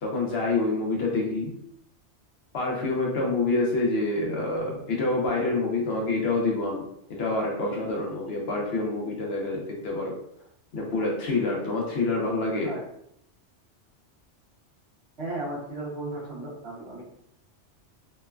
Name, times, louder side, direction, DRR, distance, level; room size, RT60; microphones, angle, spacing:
voice 1, 0.0-1.5 2.5-6.8 7.1-10.1 10.7-12.7, left 2 dB, 60° left, -2 dB, 0.8 m, -27 dB
voice 2, 15.2-17.0, right 2 dB, 65° right, -5 dB, 1.0 m, -35 dB
2.9 x 2.1 x 2.3 m, 0.75 s
omnidirectional pair, 1.2 m